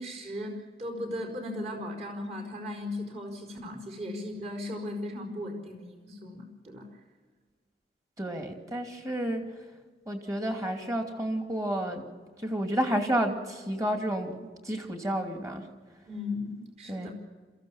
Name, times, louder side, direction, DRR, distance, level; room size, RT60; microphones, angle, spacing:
voice 1, 0.0-6.9 9.2-9.3 16.1-17.1, left 1 dB, 40° right, 3 dB, 4.6 m, -37 dB
voice 2, 8.2-9.4 10.1-12.0 12.4-15.6 16.9-17.1, right 1 dB, 20° right, 4 dB, 2.7 m, -30 dB
27.5 x 15.0 x 7.3 m, 1.4 s
head